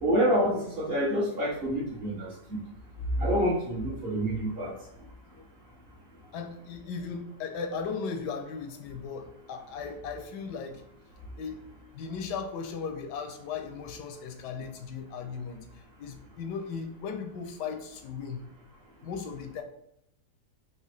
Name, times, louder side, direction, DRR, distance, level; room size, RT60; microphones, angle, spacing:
voice 1, 0.0-2.3 3.2-4.7, equal, 45° right, -5 dB, 1.0 m, -27 dB
voice 2, 6.3-10.8 11.4-11.6 11.9-18.5 19.0-19.6, left 5 dB, 80° left, 5 dB, 1.2 m, -37 dB
4.7 x 2.8 x 3.3 m, 0.76 s
omnidirectional pair, 1.8 m